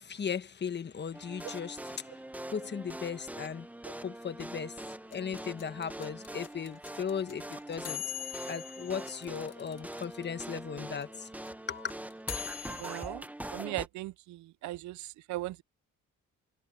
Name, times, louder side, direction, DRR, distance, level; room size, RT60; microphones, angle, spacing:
voice 1, 0.0-1.8 2.5-3.7 4.0-4.7 5.1-8.0 8.5-11.1 11.7-11.9, left 7 dB, 35° left, 1.2 m, -37 dB
sound 1, 1.1-13.9, right 1 dB, 5° right, 0.9 m, -43 dB
sound 2, 5.1-10.2 10.5-10.6 10.8-13.1, left 11 dB, 55° left, 1.5 m, -41 dB
voice 2, 12.7-15.6, right 17 dB, 70° right, 0.5 m, -39 dB
cardioid pair, 90°, 30 cm